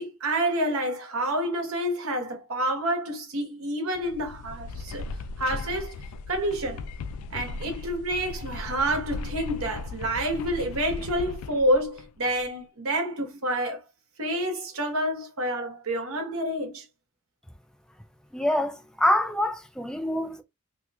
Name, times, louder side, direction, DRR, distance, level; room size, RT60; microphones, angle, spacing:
voice 1, 0.0-5.1 5.4-5.9 6.3-6.8 7.3-13.8 14.2-16.8, right 1 dB, 70° right, 1.2 m, -28 dB
sound 1, 3.9-12.5, left 3 dB, 85° left, 0.3 m, -37 dB
voice 2, 18.3-20.4, left 1 dB, 5° left, 0.4 m, -25 dB
3.0 x 2.4 x 3.3 m
head